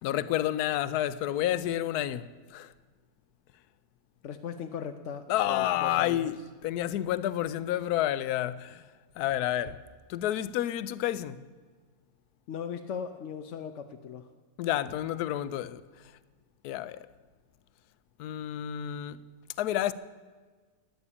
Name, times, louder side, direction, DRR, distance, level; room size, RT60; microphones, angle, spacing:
voice 1, 0.0-2.7 5.3-8.9 9.2-9.8 10.1-11.4 14.6-15.8 16.6-17.1 18.2-19.2 19.6-19.9, left 12 dB, 80° left, 1.1 m, -30 dB
voice 2, 4.2-6.3 12.5-14.3, left 7 dB, 60° left, 0.9 m, -38 dB
13.5 x 9.9 x 8.6 m
omnidirectional pair, 1.6 m